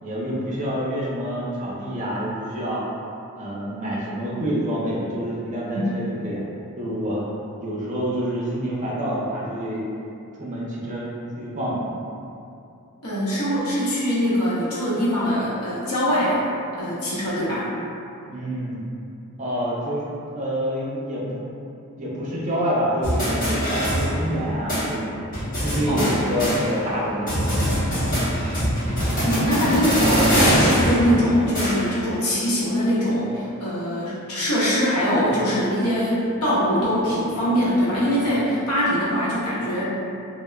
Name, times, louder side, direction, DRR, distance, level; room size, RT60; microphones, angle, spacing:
voice 1, 0.0-2.8 3.4-6.4 6.8-7.2 7.6-9.9 10.4-11.8 18.2-18.8 19.4-20.1 20.3-21.4 22.0-25.1 25.6-27.9, equal, 35° right, -6 dB, 0.5 m, -27 dB
voice 2, 13.0-16.4 16.8-17.7 25.9-26.1 29.2-39.8, equal, 80° left, -9 dB, 0.8 m, -22 dB
sound 1, 23.0-24.4 24.7-24.8 25.3-27.0 27.3-32.1, equal, 40° left, 1.1 m, -22 dB
3.3 x 2.0 x 2.2 m, 2.7 s
head